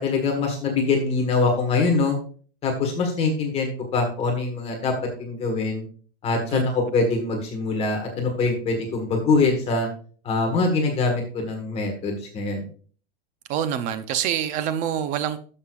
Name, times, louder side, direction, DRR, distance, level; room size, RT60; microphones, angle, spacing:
voice 1, 0.0-2.2 2.6-4.9 5.2-5.8 6.2-9.9 10.2-12.7, left 3 dB, 20° left, 3 dB, 1.6 m, -23 dB
voice 2, 13.5-15.4, right 9 dB, 25° right, 11 dB, 0.6 m, -26 dB
12.5 x 6.5 x 2.4 m, 0.43 s
supercardioid pair, 160°, 29 cm